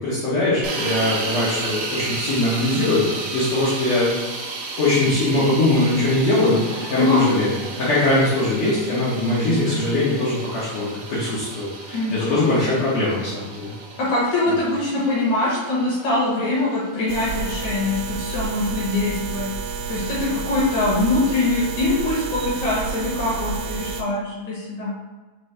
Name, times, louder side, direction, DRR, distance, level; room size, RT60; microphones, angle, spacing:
voice 1, 0.0-4.1 4.8-13.7, left 2 dB, 85° left, -10 dB, 1.5 m, -21 dB
sound 1, 0.6-18.6, right 3 dB, 70° right, 2.3 m, -33 dB
voice 2, 7.0-7.3 11.9-12.8 14.0-19.4 19.9-24.9, left 2 dB, 70° left, -6 dB, 1.8 m, -23 dB
sound 2, 17.1-24.0, right 4 dB, 85° right, 2.6 m, -30 dB
6.1 x 2.6 x 3.2 m, 1.3 s
omnidirectional pair, 4.6 m